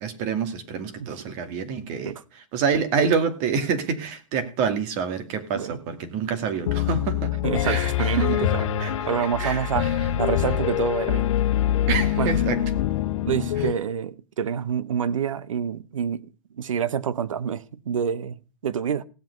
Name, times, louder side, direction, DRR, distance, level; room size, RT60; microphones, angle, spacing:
voice 1, 0.0-2.1 2.5-7.3 7.6-7.9 8.2-8.3 8.8-8.9 9.4-9.6 11.9-12.6, right 6 dB, 45° right, 2.4 m, -26 dB
Piano, 6.7-13.7, left 11 dB, 70° left, 1.1 m, -24 dB
voice 2, 7.4-8.7 9.1-9.9 10.2-11.3 12.2-12.3 13.2-19.0, right 8 dB, 80° right, 1.0 m, -27 dB
16.5 x 7.8 x 5.4 m
hypercardioid pair, 120°, 16 cm